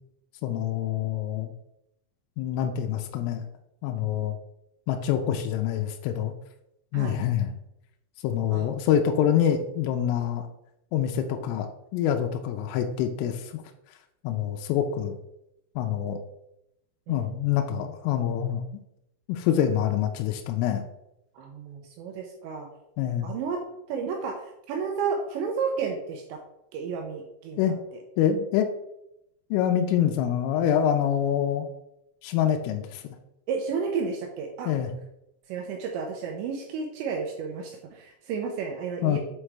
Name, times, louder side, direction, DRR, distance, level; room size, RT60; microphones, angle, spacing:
voice 1, 0.4-1.5 2.4-3.4 3.8-4.4 4.9-6.3 6.9-7.5 8.2-10.5 10.9-11.7 11.9-13.6 14.2-15.2 15.8-16.2 17.1-18.6 19.3-20.8 23.0-23.3 27.6-27.8 28.2-28.7 29.5-31.7 32.2-33.2 34.7-34.9 39.0-39.2, left 9 dB, 85° left, 4 dB, 3.1 m, -26 dB
voice 2, 21.4-22.7 23.2-23.6 23.9-26.4 26.7-28.0 33.5-34.7 35.5-39.2, right 5 dB, 85° right, 2 dB, 2.6 m, -32 dB
7.3 x 4.8 x 3.3 m, 0.82 s
omnidirectional pair, 5.9 m